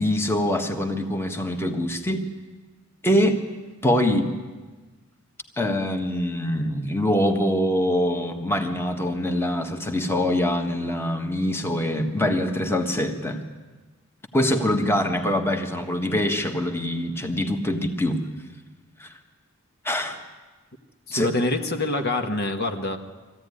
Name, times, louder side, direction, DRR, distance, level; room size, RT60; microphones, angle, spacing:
voice 1, 0.0-2.2 3.0-3.4 3.8-4.3 5.6-13.4 14.3-18.2 19.0-19.1 19.8-20.2 21.1-21.3, left 1 dB, 10° left, 4 dB, 1.5 m, -24 dB
voice 2, 21.1-23.0, left 2 dB, 50° left, 5 dB, 1.4 m, -25 dB
22.5 x 15.0 x 9.8 m, 1.3 s
head